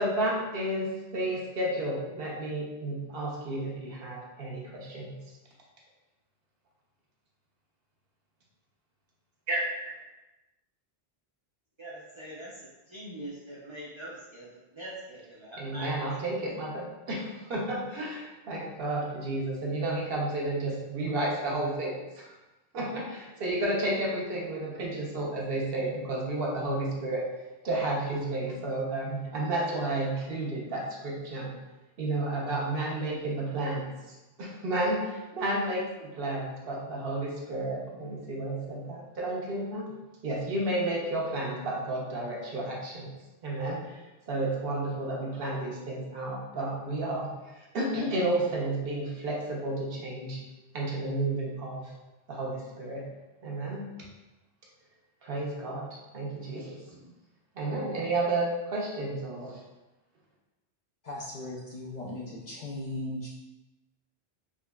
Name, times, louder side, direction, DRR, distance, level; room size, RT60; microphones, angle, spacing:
voice 1, 0.0-5.2 9.5-10.0 15.6-22.3 22.7-27.2 27.6-31.5 32.0-39.9 40.2-43.1 43.4-44.0 44.3-50.4 50.7-51.9 52.3-53.1 53.4-53.8 55.2-55.9 56.1-57.0 57.6-59.6, right 2 dB, 65° right, -2 dB, 0.9 m, -32 dB
voice 2, 11.8-14.5 14.8-16.2, right 1 dB, 40° right, -7 dB, 0.4 m, -43 dB
voice 3, 61.0-63.3, left 1 dB, 55° left, -4 dB, 0.5 m, -37 dB
3.7 x 3.0 x 2.2 m, 1.1 s
omnidirectional pair, 1.1 m